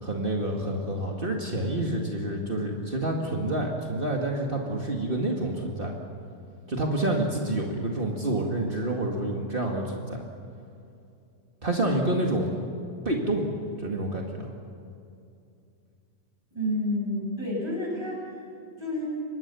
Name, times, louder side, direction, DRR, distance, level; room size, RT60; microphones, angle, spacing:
voice 1, 0.0-5.9 6.7-10.2 11.6-12.5 13.0-13.5 13.8-14.5, right 1 dB, 50° right, 0 dB, 0.6 m, -28 dB
voice 2, 16.5-18.2 18.8-19.0, left 1 dB, 5° right, -4 dB, 7.9 m, -29 dB
25.0 x 20.5 x 7.0 m, 2.6 s
omnidirectional pair, 4.7 m